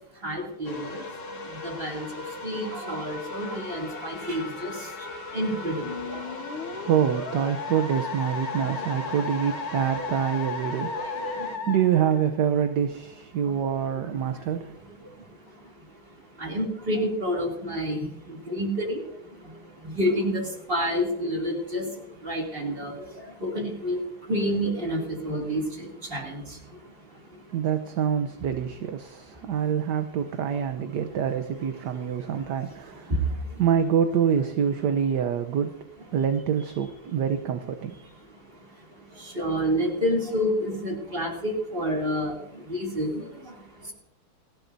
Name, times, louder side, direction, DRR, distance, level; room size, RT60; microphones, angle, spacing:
voice 1, 0.1-6.5 8.6-9.1 9.9-10.1 10.8-11.6 13.4-13.5 13.9-27.6 29.3-29.7 31.8-33.6 38.0-43.9, equal, 25° right, -1 dB, 3.0 m, -31 dB
sound 1, 0.6-11.6, left 3 dB, 40° left, 1.6 m, -40 dB
Musical instrument, 5.8-12.7, left 4 dB, 80° left, 2.2 m, -35 dB
voice 2, 6.8-11.4 11.7-14.7 27.5-33.1 33.6-35.7 36.1-37.9, right 8 dB, 65° right, 8 dB, 1.2 m, -26 dB
29.5 x 11.5 x 2.7 m, 0.82 s
omnidirectional pair, 2.3 m